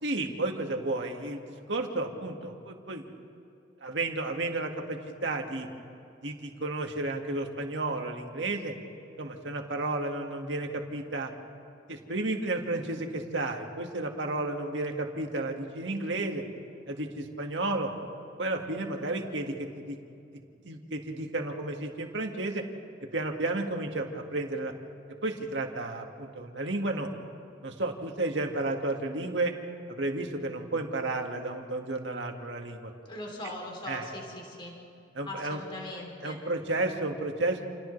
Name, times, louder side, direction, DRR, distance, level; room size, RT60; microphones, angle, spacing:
voice 1, 0.0-3.1 3.8-5.7 6.2-8.7 9.2-11.3 11.9-16.4 16.9-17.9 18.4-20.0 20.6-22.6 23.1-24.7 25.2-27.1 27.6-29.5 29.9-32.9 33.9-34.1 35.2-35.6 36.2-37.6, right 2 dB, 75° right, 3 dB, 1.9 m, -32 dB
voice 2, 33.0-34.7 35.3-36.4, left 2 dB, 25° left, 0 dB, 3.2 m, -40 dB
29.0 x 28.5 x 3.3 m, 2.6 s
head